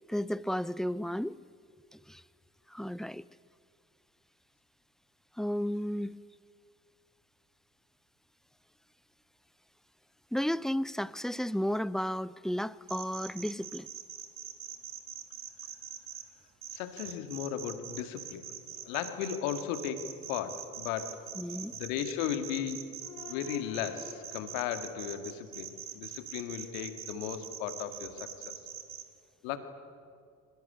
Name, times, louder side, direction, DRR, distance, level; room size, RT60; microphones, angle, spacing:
voice 1, 0.1-1.4 1.9-2.2 2.7-3.2 5.4-6.2 10.3-13.9 21.4-21.7, equal, ahead, 0.5 m, -33 dB
sound 1, 12.9-16.2 16.6-29.0, right 9 dB, 50° right, 2.7 m, -43 dB
voice 2, 16.7-18.4 18.8-21.2 21.7-28.3 29.4-29.6, left 9 dB, 75° left, 1.9 m, -36 dB
23.5 x 20.5 x 9.9 m
figure-of-eight pair, 50°, 41 cm